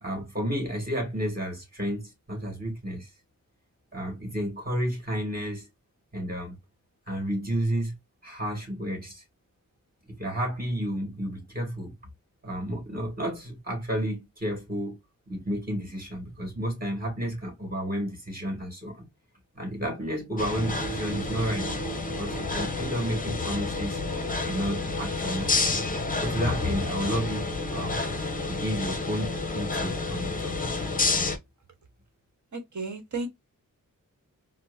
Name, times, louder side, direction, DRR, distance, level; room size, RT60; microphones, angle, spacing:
voice 1, 0.0-3.1 3.9-5.7 6.1-6.6 7.1-7.9 8.2-9.2 10.1-11.9 12.4-15.0 15.3-19.1 19.5-21.7 22.1-24.0 24.3-25.9 26.2-28.0 28.5-30.7, equal, 25° right, 2.1 m, -31 dB
sound 1, 20.4-31.4, left 3 dB, 25° left, 0.6 m, -29 dB
voice 2, 32.5-33.3, right 3 dB, 55° right, 1.1 m, -33 dB
4.4 x 2.0 x 2.6 m
wide cardioid pair, 120°, 34 cm